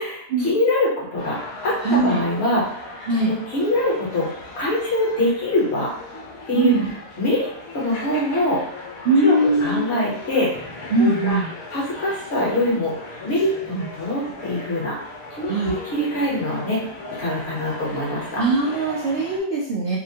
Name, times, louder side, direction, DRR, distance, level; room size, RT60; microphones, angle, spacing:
voice 1, 0.0-1.4 1.6-2.8 3.2-4.3 4.6-5.9 6.5-6.7 7.2-7.5 7.7-8.6 9.2-10.7 11.0-11.4 11.7-14.9 15.3-16.8 17.2-18.4, left 1 dB, 55° left, -5 dB, 1.2 m, -23 dB
sound 1, 1.2-19.4, left 2 dB, 85° left, 1.1 m, -38 dB
voice 2, 1.8-2.2 3.1-3.3 6.5-6.9 9.0-9.9 10.9-11.5 13.7-13.9 15.5-15.7 18.4-20.0, right 2 dB, 65° right, -5 dB, 0.6 m, -21 dB
2.8 x 2.1 x 2.7 m, 0.69 s
omnidirectional pair, 1.4 m